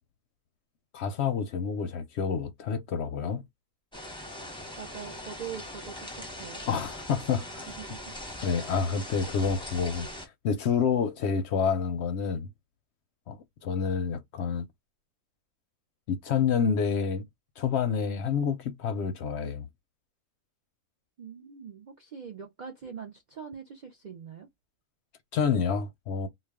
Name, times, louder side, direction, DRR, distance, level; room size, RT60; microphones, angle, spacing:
voice 1, 0.9-3.4 6.7-7.7 8.4-10.1 10.4-12.5 13.3-14.7 16.1-17.3 17.6-19.7 25.3-26.3, left 6 dB, 65° left, 0.7 m, -28 dB
sound 1, 3.9-10.3, left 1 dB, 5° left, 0.6 m, -41 dB
voice 2, 4.8-6.7 7.8-8.0 21.2-24.5, right 7 dB, 60° right, 0.4 m, -43 dB
2.3 x 2.2 x 3.4 m
omnidirectional pair, 1.4 m